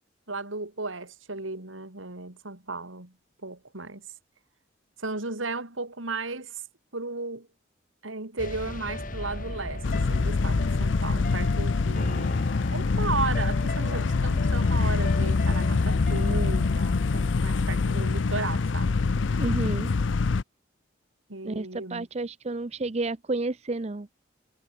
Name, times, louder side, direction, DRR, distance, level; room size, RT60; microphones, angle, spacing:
voice 1, 0.3-3.1 3.4-4.0 5.0-6.6 6.9-7.5 8.0-18.9 21.3-22.1, right 3 dB, 85° right, 3.6 m, -35 dB
sound 1, 8.4-17.4, left 1 dB, 45° left, 2.8 m, -37 dB
sound 2, 9.8-20.4, left 4 dB, 75° left, 0.6 m, -25 dB
voice 2, 19.4-19.9 21.4-24.1, right 2 dB, 35° right, 0.6 m, -31 dB
head